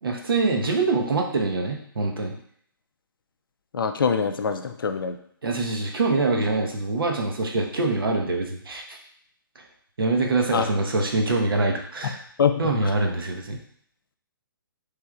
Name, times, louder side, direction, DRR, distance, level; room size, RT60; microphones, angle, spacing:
voice 1, 0.0-2.4 5.4-9.0 10.0-12.2 12.6-13.6, right 3 dB, 75° right, 2 dB, 0.7 m, -24 dB
voice 2, 3.7-5.2 10.5-10.7 12.4-12.9, left 6 dB, 70° left, 7 dB, 0.4 m, -24 dB
3.3 x 3.1 x 2.3 m, 0.64 s
figure-of-eight pair, 130°, 12 cm